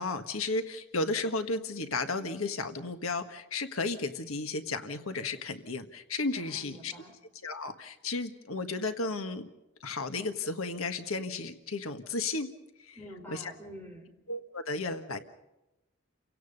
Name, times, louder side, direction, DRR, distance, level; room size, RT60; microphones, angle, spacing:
voice 1, 0.0-6.9 7.4-9.5 9.8-12.5 12.8-13.0 13.3-13.5 14.3-15.2, left 3 dB, 85° left, 7 dB, 1.5 m, -33 dB
voice 2, 6.4-7.1 12.9-14.2, equal, 10° left, 1 dB, 5.0 m, -47 dB
30.0 x 17.0 x 5.4 m, 0.93 s
head